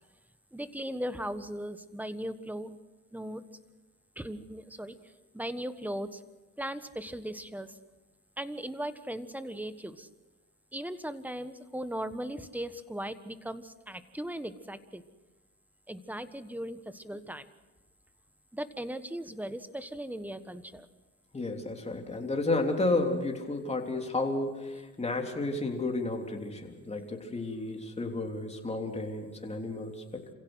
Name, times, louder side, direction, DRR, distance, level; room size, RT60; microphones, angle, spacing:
voice 1, 0.5-2.8 3.1-3.4 4.2-6.2 6.6-7.8 8.4-10.1 10.7-15.0 15.9-17.5 18.5-20.9, right 1 dB, 5° right, 11 dB, 1.4 m, -38 dB
voice 2, 21.3-30.2, left 2 dB, 20° left, 2 dB, 3.5 m, -32 dB
27.5 x 16.5 x 6.4 m, 1.1 s
cardioid pair, 90°, 30 cm